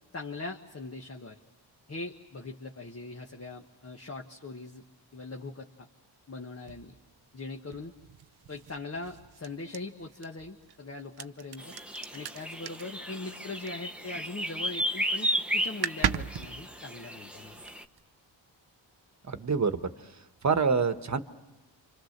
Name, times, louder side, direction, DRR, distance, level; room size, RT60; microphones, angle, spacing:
voice 1, 0.1-1.4 1.9-4.8 5.1-5.9 6.3-6.9 7.3-7.9 8.5-11.7 12.1-17.6, left 3 dB, 35° left, 2 dB, 1.4 m, -41 dB
sound 1, 6.7-14.3 14.6-15.1 15.4-15.5 15.6-18.0, right 9 dB, 60° right, 0.8 m, -38 dB
sound 2, 11.6-17.8, equal, 5° right, 1.1 m, -34 dB
voice 2, 19.3-19.8 20.4-21.2, right 5 dB, 40° right, 9 dB, 1.3 m, -26 dB
29.0 x 25.5 x 6.7 m, 1.1 s
cardioid pair, 75°, 45 cm